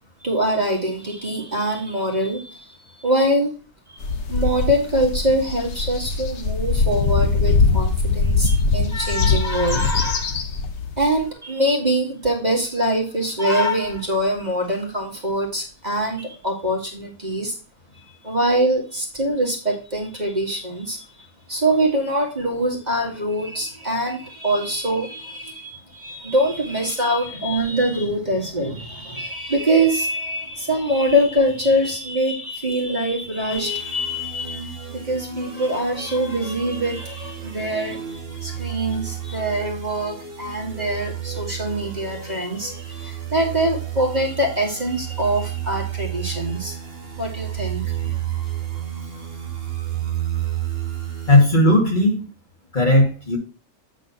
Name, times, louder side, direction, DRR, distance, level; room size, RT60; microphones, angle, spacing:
voice 1, 0.2-2.7 3.0-3.5 3.9-4.0 4.3-10.4 11.0-17.6 18.0-21.0 21.5-46.8 47.2-48.3, right 1 dB, 30° right, -1 dB, 2.1 m, -24 dB
sound 1, 4.0-11.1, left 4 dB, 60° left, 1.2 m, -21 dB
sound 2, 33.5-51.5, right 11 dB, 50° right, 1.5 m, -31 dB
voice 2, 51.3-52.2 52.7-53.4, left 1 dB, 35° left, -1 dB, 2.4 m, -16 dB
8.7 x 3.8 x 5.7 m, 0.34 s
omnidirectional pair, 1.4 m